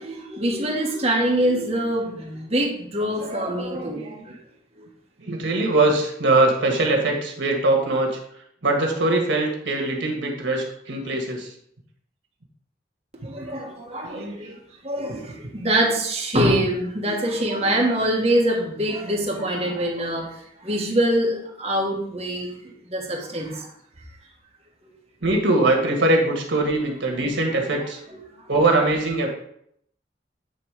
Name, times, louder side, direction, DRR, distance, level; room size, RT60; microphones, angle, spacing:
voice 1, 0.0-4.1 4.8-4.9 13.2-14.4 14.8-20.3 20.6-23.6, right 1 dB, 35° right, -2 dB, 1.4 m, -24 dB
voice 2, 3.8-4.1 5.2-8.2 8.6-11.5 14.0-14.6 19.6-19.7 25.2-28.0 28.5-29.3, right 2 dB, 85° right, 1 dB, 1.5 m, -22 dB
8.4 x 3.3 x 4.8 m, 0.71 s
head